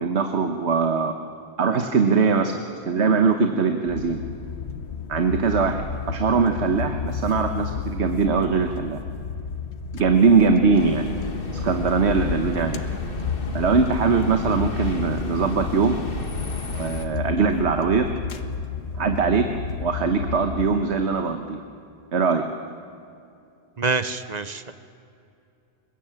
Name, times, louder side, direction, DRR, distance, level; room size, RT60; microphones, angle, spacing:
voice 1, 0.0-1.1 1.6-2.5 2.9-4.2 5.1-9.0 10.0-11.1 11.6-12.8 13.5-16.0 16.7-18.1 19.0-19.5 19.8-21.6 22.1-22.4, right 5 dB, 90° right, 6 dB, 1.4 m, -21 dB
sound 1, 3.9-20.8, left 6 dB, 80° left, 1.2 m, -32 dB
sound 2, 10.7-17.1, left 2 dB, 55° left, 2.0 m, -33 dB
voice 2, 23.8-24.7, right 4 dB, 40° right, 12 dB, 1.0 m, -26 dB
21.5 x 21.0 x 8.9 m, 2.5 s
omnidirectional pair, 1.1 m